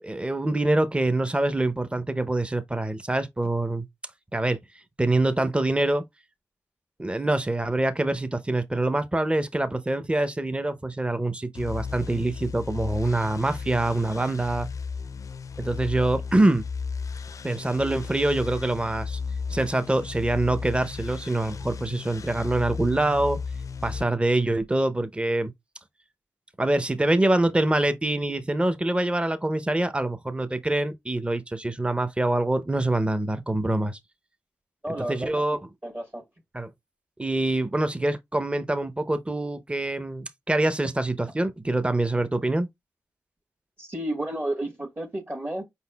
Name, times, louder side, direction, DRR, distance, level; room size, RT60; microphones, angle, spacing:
voice 1, 0.0-3.9 4.3-4.6 5.0-6.0 7.0-14.7 15.6-16.6 17.4-19.2 19.5-23.4 23.8-25.5 26.6-34.0 35.1-35.6 36.5-36.7 37.2-42.7, right 2 dB, 15° right, 0.7 m, -25 dB
sound 1, 11.5-24.0, left 5 dB, 60° left, 0.4 m, -35 dB
voice 2, 34.8-35.3 35.8-36.2 43.8-45.6, right 1 dB, 35° right, 1.4 m, -31 dB
5.0 x 4.0 x 2.3 m
cardioid pair, 40°, 6 cm